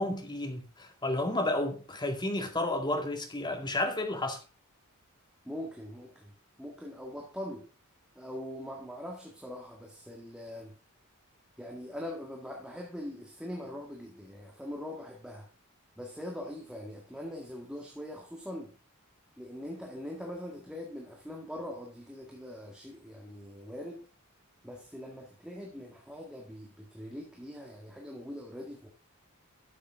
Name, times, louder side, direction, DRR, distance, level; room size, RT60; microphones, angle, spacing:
voice 1, 0.0-4.4, left 1 dB, 20° left, 2.0 m, -31 dB
voice 2, 5.4-6.3 6.6-7.7 8.2-10.8 11.6-15.5 16.0-18.7 19.4-24.1 24.6-28.9, left 1 dB, 5° right, 1.8 m, -42 dB
12.5 x 7.2 x 3.5 m
head